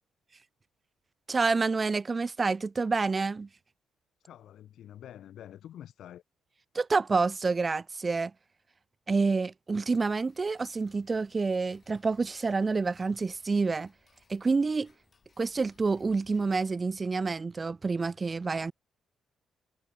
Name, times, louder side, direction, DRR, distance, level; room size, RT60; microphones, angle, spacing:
voice 1, 1.3-3.5 6.8-8.3 9.1-13.9 14.3-14.9 15.4-18.7, right 4 dB, 30° right, 0.3 m, -28 dB
voice 2, 4.2-6.2, left 11 dB, 70° left, 2.3 m, -47 dB
Tick-tock, 9.9-16.7, left 5 dB, 40° left, 4.1 m, -67 dB
cardioid pair, 90°, 0 cm